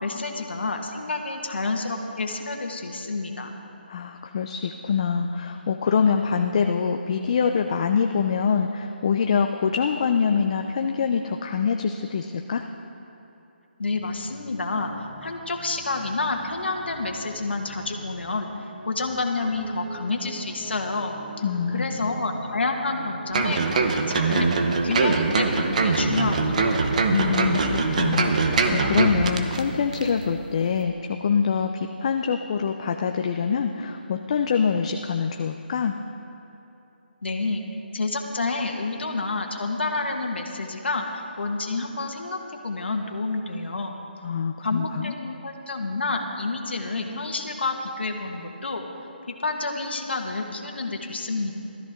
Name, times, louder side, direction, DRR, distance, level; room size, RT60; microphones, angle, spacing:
voice 1, 0.0-3.5 13.8-18.5 18.8-21.2 21.7-26.8 37.2-37.6 37.9-44.0 44.6-48.8 49.3-51.6, left 3 dB, 85° left, 2 dB, 1.7 m, -29 dB
voice 2, 3.9-12.6 21.4-21.8 27.1-35.9 44.2-45.1, left 6 dB, 35° left, 5 dB, 0.5 m, -25 dB
sound 1, 13.9-30.4, right 1 dB, 15° right, 1.7 m, -43 dB
sound 2, 23.3-29.6 29.9-30.0, right 4 dB, 45° right, 1.0 m, -22 dB
15.5 x 13.5 x 3.7 m, 3.0 s
hypercardioid pair, 170°, 6 cm